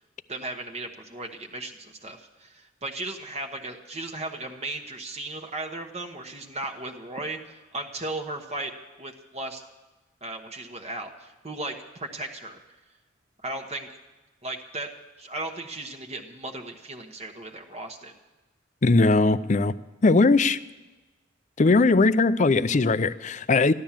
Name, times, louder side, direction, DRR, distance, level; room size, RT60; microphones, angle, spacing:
voice 1, 0.3-8.7 9.0-9.6 10.2-12.6 13.4-13.9 14.4-14.9 15.2-18.1, right 2 dB, 35° right, 1.1 m, -36 dB
voice 2, 18.8-19.7 20.0-20.6 21.6-23.7, left 3 dB, 40° left, 0.5 m, -19 dB
14.0 x 12.0 x 7.3 m
head